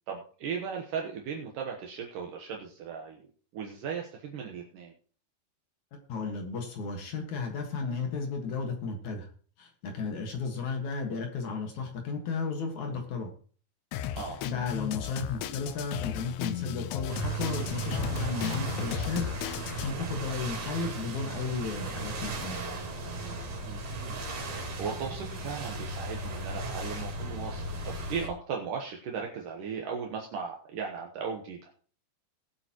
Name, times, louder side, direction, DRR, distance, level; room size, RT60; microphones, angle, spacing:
voice 1, 0.1-3.3 3.5-4.9 14.1-14.5 23.6-31.7, right 6 dB, 75° right, 1 dB, 1.9 m, -37 dB
voice 2, 6.1-9.3 9.6-13.3 14.4-22.6, left 4 dB, 55° left, 3 dB, 2.2 m, -34 dB
Drum kit, 13.9-19.9, left 11 dB, 85° left, 2.4 m, -35 dB
sound 1, 17.1-28.3, right 3 dB, 50° right, 5.1 m, -36 dB
20.0 x 8.0 x 3.0 m, 0.44 s
omnidirectional pair, 5.5 m